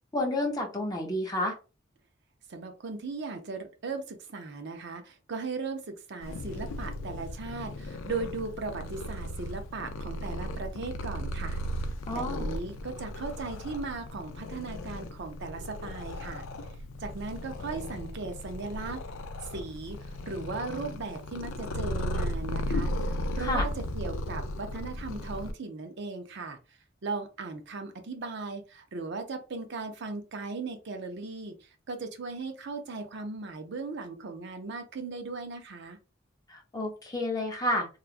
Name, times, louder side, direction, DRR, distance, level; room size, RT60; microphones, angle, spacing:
voice 1, 0.1-1.5 12.1-12.5 23.4-23.6 36.5-37.9, left 1 dB, 20° left, 0 dB, 0.7 m, -30 dB
voice 2, 2.5-11.6 12.1-16.4 17.0-19.0 19.5-26.6 27.0-36.0, right 3 dB, 60° right, 6 dB, 0.5 m, -37 dB
Purr, 6.2-25.5, left 1 dB, 85° left, 0.4 m, -36 dB
2.9 x 2.3 x 2.4 m, 0.32 s
head